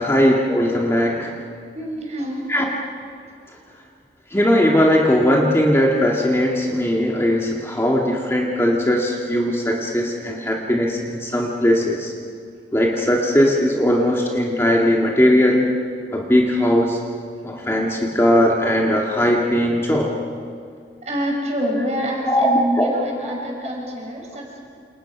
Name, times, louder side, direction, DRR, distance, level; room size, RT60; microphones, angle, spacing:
voice 1, 0.0-1.4 2.5-2.6 4.3-12.1 12.7-15.7 16.1-17.0 17.4-20.1 22.3-22.9, equal, 15° left, -1 dB, 2.1 m, -19 dB
voice 2, 1.7-2.5 21.0-24.6, equal, 40° right, 0 dB, 5.9 m, -27 dB
28.5 x 28.5 x 6.1 m, 2.2 s
head